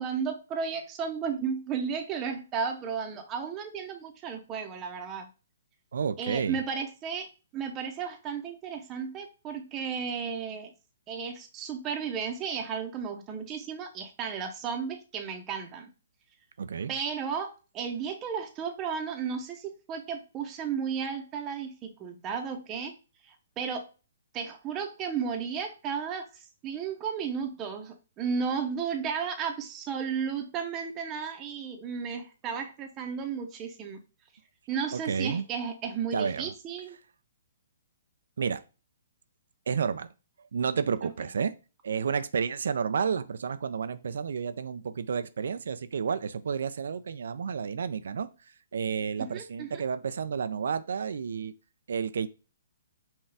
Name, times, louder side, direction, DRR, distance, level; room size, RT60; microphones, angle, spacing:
voice 1, 0.0-5.3 6.2-7.3 7.5-10.7 11.1-15.9 16.9-22.9 23.2-23.8 24.3-34.0 34.7-37.0 41.0-41.1 49.3-49.8, right 6 dB, 25° right, 4 dB, 0.7 m, -34 dB
voice 2, 5.9-6.6 16.6-16.9 34.9-35.5 36.1-36.5 38.4-38.6 39.7-40.1 40.5-41.5 41.8-48.3 48.7-51.5 51.9-52.3, right 6 dB, 70° right, 12 dB, 0.3 m, -31 dB
5.5 x 2.3 x 3.4 m, 0.32 s
hypercardioid pair, 135°, 0 cm